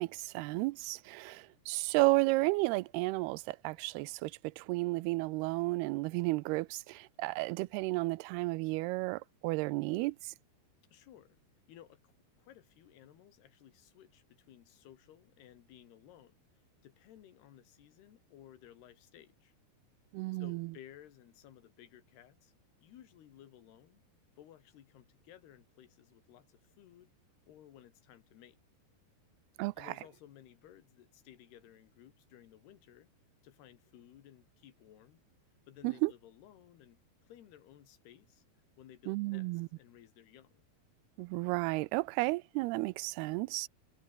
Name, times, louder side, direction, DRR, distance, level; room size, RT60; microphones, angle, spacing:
voice 1, 0.0-10.3 20.1-20.7 29.6-29.9 35.8-36.1 39.1-39.7 41.2-43.7, right 22 dB, 85° right, 2.6 m, -33 dB
voice 2, 10.9-11.4 11.7-19.5 20.3-22.5 22.8-24.0 24.4-27.1 27.5-28.6 29.8-33.1 33.4-35.2 35.7-38.4 38.8-40.6, left 11 dB, 85° left, 3.9 m, -57 dB
omnidirectional pair, 4.5 m